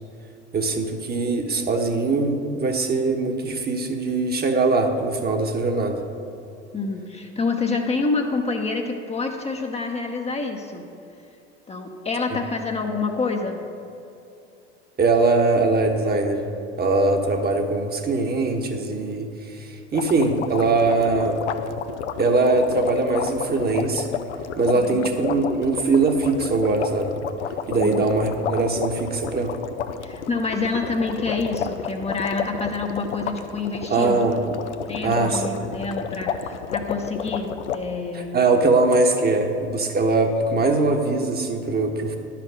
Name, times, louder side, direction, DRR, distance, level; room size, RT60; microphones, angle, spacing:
voice 1, 0.5-6.0 15.0-16.5 16.8-21.4 22.2-24.1 24.6-27.1 27.7-29.6 33.9-34.4 35.0-35.5 38.1-42.2, right 3 dB, 30° right, 4 dB, 1.2 m, -21 dB
voice 2, 6.7-10.9 11.7-13.6 24.7-25.0 27.7-28.1 30.0-34.2 34.9-38.4, left 3 dB, 20° left, 2 dB, 0.8 m, -27 dB
sound 1, 19.9-37.8, left 8 dB, 85° left, 0.6 m, -31 dB
10.5 x 5.9 x 6.4 m, 2.8 s
hypercardioid pair, 75°, 34 cm